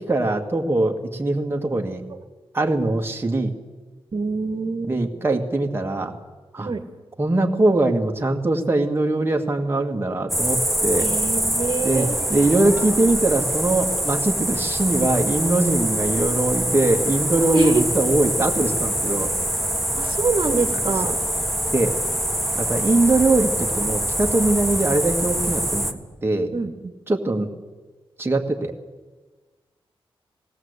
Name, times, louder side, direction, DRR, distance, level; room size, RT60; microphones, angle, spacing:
voice 1, 0.0-2.0 2.5-3.5 4.9-6.2 6.5-6.7 7.2-11.1 11.8-19.3 21.0-21.1 21.7-21.9 22.5-26.5 27.1-27.5 28.2-28.7, right 2 dB, 25° right, 2 dB, 1.9 m, -22 dB
voice 2, 4.1-4.9 6.6-6.8 11.0-12.2 17.5-17.8 19.9-21.2 26.5-26.9, right 4 dB, 55° right, 5 dB, 1.6 m, -25 dB
sound 1, 10.3-25.9, right 1 dB, ahead, 1.5 m, -24 dB
20.5 x 17.0 x 8.2 m, 1.3 s
wide cardioid pair, 100°, 10 cm